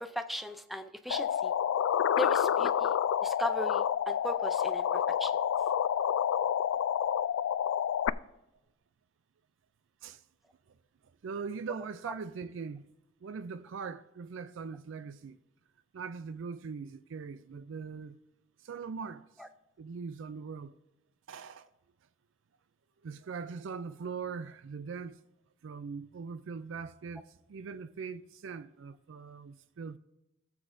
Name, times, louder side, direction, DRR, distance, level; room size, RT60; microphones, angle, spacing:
voice 1, 0.0-1.5 2.2-2.9 3.2-4.9 5.2-5.3, equal, ahead, 0.5 m, -37 dB
sound 1, 1.1-8.1, left 9 dB, 90° left, 0.3 m, -28 dB
voice 2, 11.0-12.9 13.2-15.4 15.9-18.2 18.6-19.4 19.8-20.8 21.3-21.7 23.0-25.2 25.6-30.0, right 5 dB, 75° right, 0.4 m, -41 dB
18.0 x 7.0 x 2.6 m
head